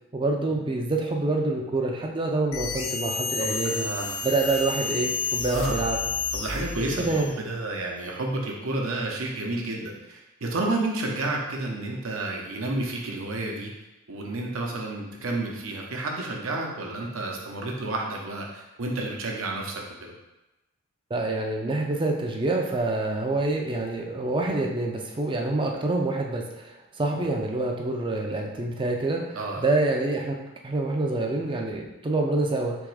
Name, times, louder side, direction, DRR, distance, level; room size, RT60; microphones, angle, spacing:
voice 1, 0.1-3.9 4.2-6.0 7.0-7.3 21.1-30.4 30.6-32.8, right 2 dB, 25° right, 1 dB, 0.5 m, -26 dB
sound 1, 2.5-7.4, left 4 dB, 65° left, 0.6 m, -31 dB
voice 2, 3.4-4.3 5.5-5.8 6.3-13.7 14.1-20.1 29.3-29.7, right 2 dB, 65° right, 0 dB, 0.8 m, -31 dB
3.5 x 3.0 x 4.8 m, 0.98 s
head